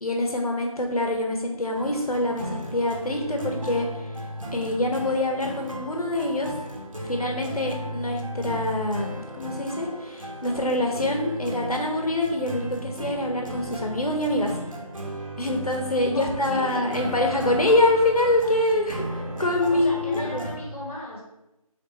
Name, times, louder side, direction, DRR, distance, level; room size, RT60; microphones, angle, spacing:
voice 1, 0.0-4.1 4.5-6.5 7.0-14.5 15.4-19.0 19.4-20.5, left 1 dB, 85° left, 2 dB, 1.3 m, -25 dB
sound 1, 1.7-20.6, right 1 dB, 65° right, 1.7 m, -35 dB
voice 2, 16.1-16.9 19.7-21.2, left 1 dB, 20° left, -9 dB, 2.1 m, -36 dB
8.3 x 3.6 x 4.1 m, 0.91 s
figure-of-eight pair, 170°, 18 cm